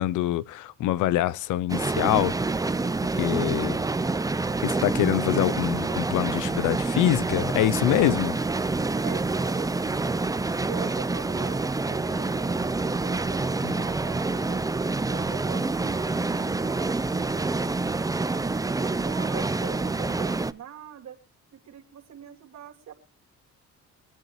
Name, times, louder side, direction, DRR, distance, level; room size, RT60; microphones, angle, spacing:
voice 1, 0.0-2.4 3.2-3.8 4.6-8.4 13.6-13.7, left 14 dB, 85° left, 0.6 m, -25 dB
sound 1, 1.7-20.5, right 3 dB, 10° right, 0.6 m, -27 dB
voice 2, 9.0-10.0 10.7-14.6 15.0-21.2 21.5-22.9, right 9 dB, 65° right, 2.9 m, -43 dB
24.5 x 9.0 x 3.1 m
cardioid pair, 90°, 30 cm